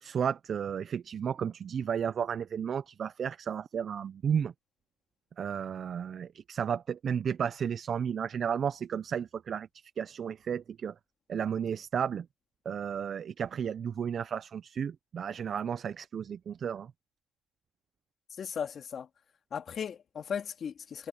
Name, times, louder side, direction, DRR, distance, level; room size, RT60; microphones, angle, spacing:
voice 1, 0.0-4.5 5.4-10.9 11.3-12.3 12.6-16.9, right 7 dB, 55° right, 0.8 m, -33 dB
voice 2, 18.4-19.1 19.5-21.1, left 7 dB, 55° left, 2.5 m, -36 dB
supercardioid pair, 60°, 0 cm